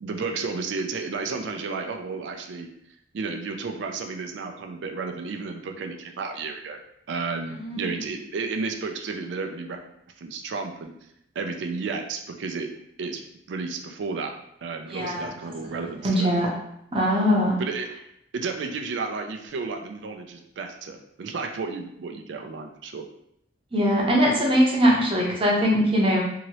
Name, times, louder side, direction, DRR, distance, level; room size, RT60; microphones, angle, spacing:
voice 1, 0.0-2.7 3.1-6.8 7.1-9.8 10.2-10.9 11.4-12.7 13.0-13.2 13.5-14.3 14.6-16.3 17.6-17.9 18.3-23.0, right 4 dB, 75° right, 4 dB, 0.4 m, -32 dB
voice 2, 7.6-8.0 14.9-15.3 16.0-16.5 16.9-17.6 23.7-26.2, equal, 30° right, -3 dB, 0.7 m, -21 dB
2.9 x 2.7 x 2.9 m, 0.75 s
head